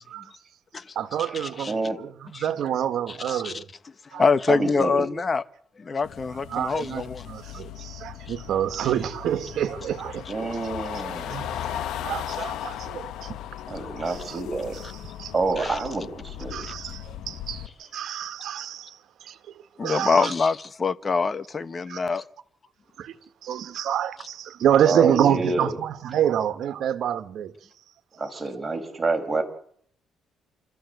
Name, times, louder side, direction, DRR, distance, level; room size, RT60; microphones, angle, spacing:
voice 1, 1.0-3.7 4.1-4.3 6.5-10.5 11.3-13.4 13.7-13.8 14.0-14.4 14.7-15.7 16.5-20.3 21.9-22.0 23.0-23.2 23.4-27.5, right 10 dB, 75° right, 1.8 m, -28 dB
voice 2, 1.7-2.0 4.5-5.1 10.3-11.4 13.7-14.7 15.3-16.7 24.8-25.7 28.2-29.4, right 3 dB, 25° right, 5.8 m, -27 dB
voice 3, 4.1-5.4 5.8-7.2 15.6-15.8 19.8-22.2, left 4 dB, 35° left, 1.3 m, -24 dB
sound 1, 6.0-17.7, left 11 dB, 80° left, 1.5 m, -37 dB
27.5 x 14.0 x 8.2 m
cardioid pair, 90°, 0 cm